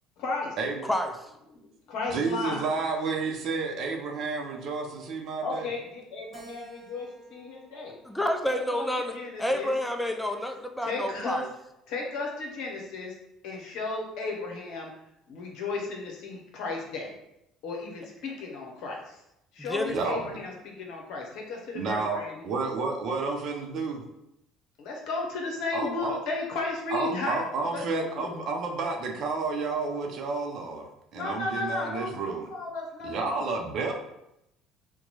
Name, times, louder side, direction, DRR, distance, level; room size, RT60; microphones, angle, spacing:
voice 1, 0.2-0.5 1.5-2.6 5.4-8.0 8.5-9.7 10.8-11.4 11.9-13.2 13.4-14.9 15.3-17.1 17.6-19.2 19.5-22.4 24.8-27.4 27.7-28.4 31.1-33.3, left 3 dB, 60° left, 0 dB, 0.9 m, -34 dB
voice 2, 2.1-5.7 19.9-20.3 21.7-22.2 22.4-24.0 25.7-26.2 26.9-32.5 33.0-33.9, right 4 dB, 55° right, 2 dB, 0.6 m, -31 dB
Keyboard (musical), 6.3-8.8 9.4-10.6, right 2 dB, 25° right, 0.9 m, -52 dB
voice 3, 8.1-9.1 9.4-11.5 19.7-20.0, left 1 dB, 5° left, 5 dB, 0.4 m, -29 dB
2.9 x 2.2 x 4.0 m, 0.84 s
hypercardioid pair, 60°, 0 cm